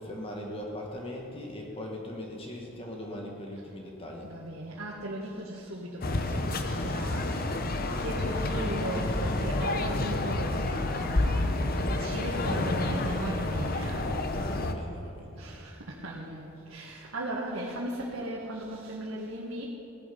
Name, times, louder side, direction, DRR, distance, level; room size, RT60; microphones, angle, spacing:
voice 1, 0.0-4.3 14.3-15.6, left 1 dB, 25° left, -1 dB, 1.6 m, -40 dB
voice 2, 4.2-14.2 15.3-19.7, right 1 dB, 85° right, -5 dB, 1.8 m, -37 dB
sound 1, 6.0-14.7, left 2 dB, 45° left, 0.8 m, -29 dB
16.5 x 11.5 x 5.3 m, 2.9 s
head